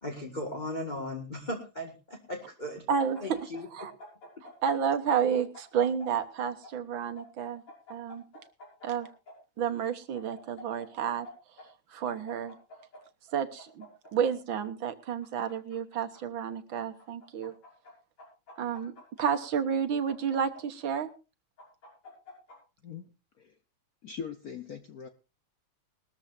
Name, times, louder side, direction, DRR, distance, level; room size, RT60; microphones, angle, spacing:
voice 1, 0.0-2.8 3.2-3.7, left 1 dB, 20° left, 0 dB, 1.9 m, -37 dB
sound 1, 2.9-4.5 4.8-6.7 7.2-9.3 10.1-11.3 11.6-11.7 12.1-13.0 13.6-14.6 15.2-16.2 17.0-17.9 18.2-19.5 20.1-21.1 21.6-22.6, left 2 dB, 85° left, 7.5 m, -48 dB
voice 2, 2.9-3.4 3.7-3.9 4.6-7.6 7.9-8.2 8.8-9.1 9.6-11.3 11.9-12.5 13.3-13.9 14.1-17.5 18.6-18.9 19.2-21.1, right 7 dB, 65° right, 8 dB, 1.9 m, -30 dB
voice 3, 24.0-25.1, left 7 dB, 55° left, 8 dB, 1.1 m, -41 dB
20.5 x 13.5 x 2.6 m, 0.30 s
omnidirectional pair, 2.4 m